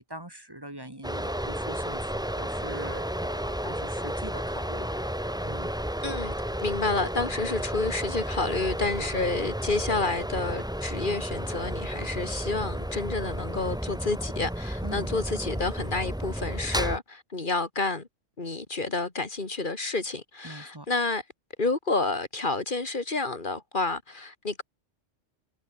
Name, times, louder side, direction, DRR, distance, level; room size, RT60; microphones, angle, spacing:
voice 1, 0.0-5.1 5.4-5.7 9.0-9.1 14.8-15.1 20.4-20.9, right 1 dB, 20° right, 1.9 m, -42 dB
sound 1, 1.0-17.0, equal, 5° right, 1.5 m, -32 dB
voice 2, 6.0-6.3 6.6-18.1 18.4-21.2 21.6-24.6, left 3 dB, 45° left, 2.4 m, -29 dB
omnidirectional pair, 1.2 m